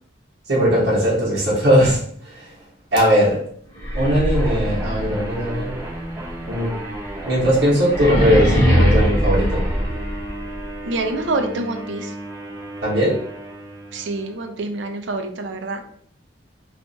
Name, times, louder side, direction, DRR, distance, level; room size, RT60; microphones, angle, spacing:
voice 1, 0.5-2.5 2.9-3.4 3.9-5.7 6.5-6.8 7.2-9.6 12.8-13.2, equal, 55° right, -7 dB, 1.0 m, -19 dB
sound 1, 3.7-10.6, equal, 20° left, 0.9 m, -22 dB
sound 2, 4.3-14.6, right 1 dB, 15° right, 0.4 m, -34 dB
voice 2, 10.8-12.1 13.9-15.8, right 2 dB, 75° right, 6 dB, 0.4 m, -26 dB
2.5 x 2.3 x 3.8 m, 0.63 s
head